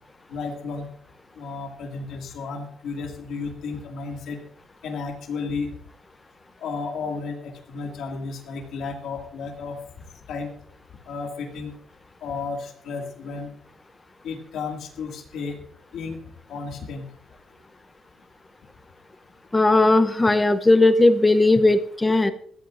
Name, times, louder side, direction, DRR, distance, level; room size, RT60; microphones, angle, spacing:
voice 1, 0.3-0.9 1.4-4.4 4.8-5.7 6.6-9.8 10.3-10.5 11.1-11.7 12.2-13.5 14.2-15.6 15.9-16.2 16.5-17.1, left 4 dB, 70° left, 2 dB, 2.1 m, -33 dB
voice 2, 19.5-22.3, left 2 dB, 10° left, 11 dB, 0.7 m, -17 dB
21.0 x 14.5 x 2.5 m, 0.64 s
cardioid pair, 160°, 0 cm